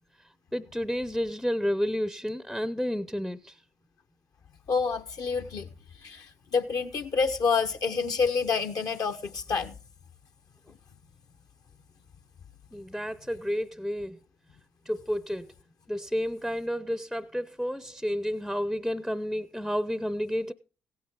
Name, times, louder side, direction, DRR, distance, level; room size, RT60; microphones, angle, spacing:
voice 1, 0.5-3.6 12.7-14.2 14.9-15.5 15.9-20.5, equal, ahead, 0.6 m, -31 dB
voice 2, 4.7-5.7 6.0-9.7, left 5 dB, 60° left, 1.1 m, -28 dB
16.0 x 8.6 x 3.7 m
hypercardioid pair, 45°, 7 cm